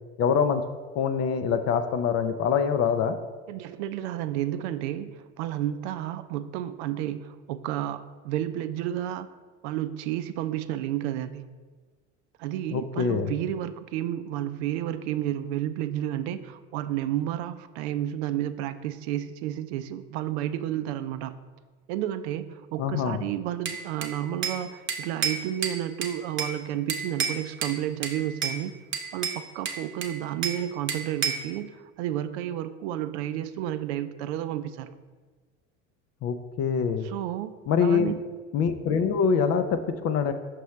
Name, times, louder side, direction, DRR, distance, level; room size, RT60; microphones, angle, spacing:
voice 1, 0.2-0.6 1.0-3.2 12.7-13.3 22.8-23.2 36.2-37.1 37.7-38.1 38.5-40.3, left 6 dB, 45° left, 9 dB, 0.5 m, -24 dB
voice 2, 3.5-9.3 9.6-11.5 12.4-21.3 21.9-28.7 29.1-35.0 37.0-37.5 37.8-38.2, right 12 dB, 70° right, 11 dB, 0.5 m, -31 dB
Bell / Glass, 23.7-24.6 24.9-26.6 26.9-27.8 28.0-28.6 28.9-30.6 30.9-31.5, right 6 dB, 35° right, 0.9 m, -30 dB
5.9 x 5.3 x 3.2 m, 1.4 s
hypercardioid pair, 85°, 35 cm